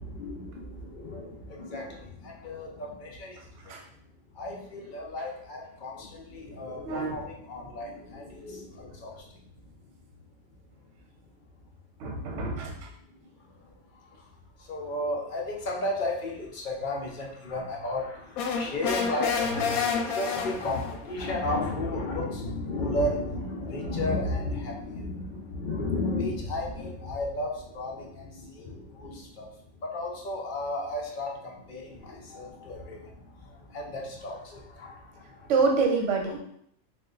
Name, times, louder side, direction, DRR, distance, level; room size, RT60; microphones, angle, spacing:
voice 1, 0.0-3.4 3.6-3.7 4.4-9.1 14.7-29.5 29.8-35.5, left 2 dB, 50° left, -1 dB, 0.6 m, -33 dB
voice 2, 6.8-7.3 12.0-12.9 35.5-36.4, right 4 dB, 65° right, 2 dB, 1.0 m, -27 dB
sound 1, 18.4-21.0, left 6 dB, 80° left, 1.0 m, -29 dB
3.3 x 2.5 x 3.7 m, 0.68 s
omnidirectional pair, 1.5 m